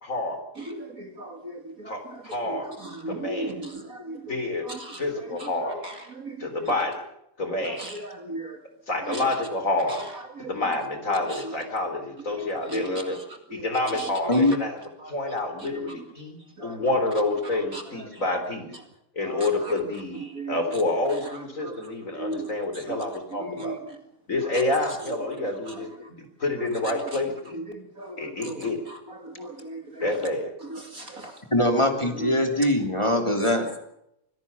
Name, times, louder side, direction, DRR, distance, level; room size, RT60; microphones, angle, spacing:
voice 1, 0.0-0.4 1.9-2.7 3.1-3.6 4.3-4.7 5.0-5.8 6.4-7.0 7.4-7.9 8.9-10.1 10.4-13.2 13.5-14.8 15.1-18.7 19.2-23.8 24.3-25.9 26.2-27.3 28.2-28.8 30.0-30.5, left 2 dB, 35° left, 7 dB, 3.9 m, -28 dB
voice 2, 0.6-6.7 7.6-8.6 9.1-9.3 9.9-10.5 11.1-11.5 12.3-13.2 13.5-14.6 15.0-15.1 15.6-16.0 16.6-16.8 17.7-18.2 19.2-19.7 20.1-20.8 21.3-21.9 22.2-22.5 22.7-23.0 23.4-24.0 24.5-24.6 25.4-26.1 26.8-27.2 27.5-30.1 30.7-31.3 32.2-32.7 33.4-33.5, right 2 dB, 40° right, 6 dB, 2.6 m, -38 dB
voice 3, 31.5-33.8, left 1 dB, 15° left, 4 dB, 3.2 m, -22 dB
24.5 x 17.0 x 7.1 m, 0.79 s
omnidirectional pair, 2.4 m